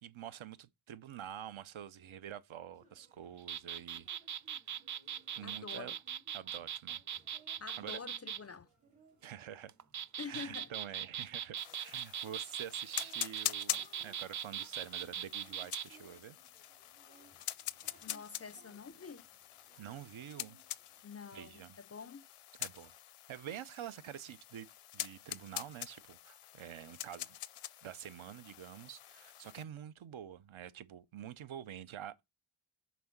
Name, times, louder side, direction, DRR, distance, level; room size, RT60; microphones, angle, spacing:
voice 1, 0.0-4.1 5.4-5.9 6.3-7.0 7.8-8.0 9.2-9.7 10.2-16.4 19.8-20.6 21.3-21.8 22.6-23.0 23.3-24.7 24.9-27.4 27.8-32.2, right 10 dB, 70° right, 0.7 m, -47 dB
sound 1, 2.7-21.0, right 3 dB, 90° right, 2.6 m, -66 dB
sound 2, 3.4-8.4 9.7-15.9, right 9 dB, 40° right, 0.4 m, -40 dB
voice 2, 5.4-6.0 7.6-8.7 10.2-10.7 18.0-19.3 21.0-22.3, left 5 dB, 30° left, 0.4 m, -47 dB
sound 3, 11.6-29.6, left 12 dB, 85° left, 0.6 m, -45 dB
6.0 x 4.1 x 5.8 m
cardioid pair, 40°, 50 cm